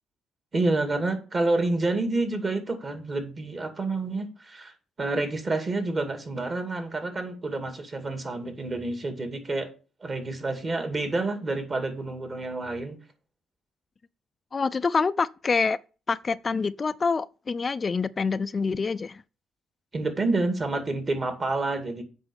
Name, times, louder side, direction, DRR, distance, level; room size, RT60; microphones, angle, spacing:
voice 1, 0.5-9.7 10.0-13.0 19.9-22.0, right 2 dB, 35° right, 2.3 m, -28 dB
voice 2, 14.5-15.8 16.1-19.2, left 4 dB, 35° left, 0.4 m, -26 dB
7.9 x 5.3 x 6.9 m
cardioid pair, 90°, 0 cm